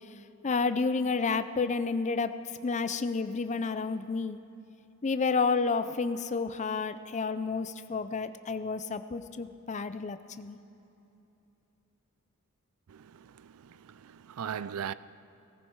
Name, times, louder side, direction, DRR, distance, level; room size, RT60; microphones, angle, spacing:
voice 1, 0.4-4.4 5.0-10.6, left 4 dB, 35° left, 0.5 m, -30 dB
voice 2, 12.9-14.9, right 8 dB, 85° right, 0.4 m, -39 dB
18.0 x 15.0 x 4.7 m
head